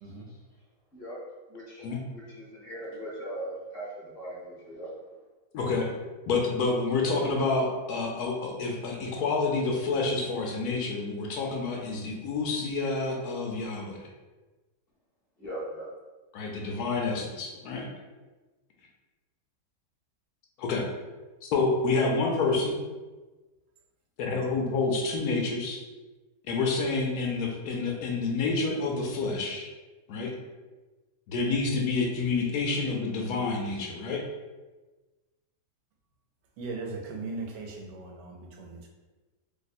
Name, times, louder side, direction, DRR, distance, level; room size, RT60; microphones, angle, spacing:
voice 1, 1.5-4.9 15.4-15.9, right 1 dB, 45° left, -7 dB, 0.9 m, -39 dB
voice 2, 5.5-5.9 6.3-14.1 16.3-17.9 20.6-20.9 21.4-22.8 24.2-25.8 26.5-29.7 30.1-30.3 31.3-34.2, left 3 dB, 75° left, 0 dB, 1.0 m, -28 dB
voice 3, 36.6-38.9, right 3 dB, 85° right, 1 dB, 1.3 m, -38 dB
3.1 x 2.1 x 4.1 m, 1.2 s
omnidirectional pair, 1.8 m